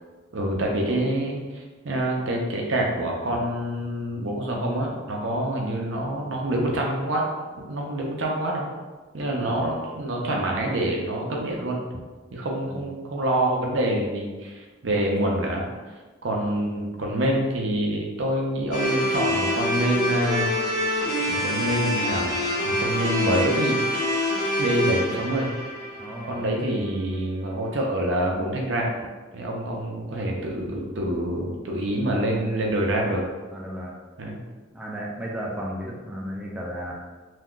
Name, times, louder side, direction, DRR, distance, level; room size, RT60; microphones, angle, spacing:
voice 1, 0.3-7.2 7.6-8.6 9.1-11.8 12.3-15.7 16.2-20.5 21.3-22.4 22.6-23.8 24.6-25.5 26.2-28.9 29.3-33.2 34.2-34.4, right 1 dB, 70° right, -1 dB, 0.6 m, -26 dB
sound 1, 18.7-26.8, left 1 dB, 40° left, 1.0 m, -26 dB
voice 2, 26.0-26.4 33.5-33.9 34.7-36.9, equal, 5° right, -4 dB, 0.4 m, -34 dB
2.6 x 2.2 x 3.7 m, 1.3 s
head